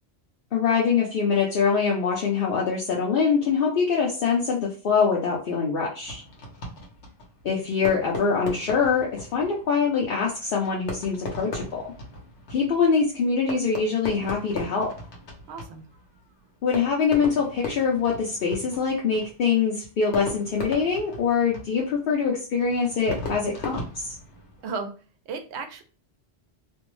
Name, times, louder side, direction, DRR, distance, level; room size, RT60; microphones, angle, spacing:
voice 1, 0.5-6.2 7.4-11.8 12.5-14.9 16.6-24.2, left 5 dB, 60° left, -3 dB, 0.7 m, -24 dB
Fireworks, 6.0-24.8, left 2 dB, 85° left, 1.1 m, -38 dB
voice 2, 15.5-15.8 24.6-24.9 25.3-25.8, right 5 dB, 80° right, 6 dB, 0.8 m, -34 dB
2.6 x 2.0 x 3.0 m, 0.38 s
omnidirectional pair, 1.1 m